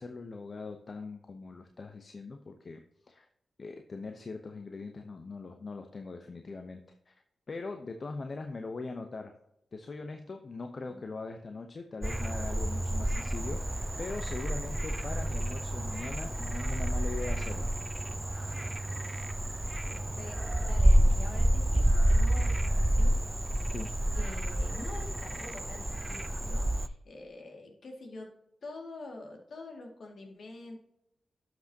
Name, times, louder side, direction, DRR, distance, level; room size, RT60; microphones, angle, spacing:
voice 1, 0.0-3.3 3.6-7.1 7.5-9.3 9.7-17.7 23.7-23.9, left 3 dB, 55° left, 5 dB, 0.8 m, -41 dB
Frog, 12.0-26.9, right 1 dB, 20° right, 0.5 m, -29 dB
voice 2, 19.8-23.6 24.1-28.3 28.6-30.8, left 2 dB, 70° left, 1 dB, 2.2 m, -46 dB
11.5 x 6.1 x 2.9 m, 0.82 s
supercardioid pair, 45°, 0 cm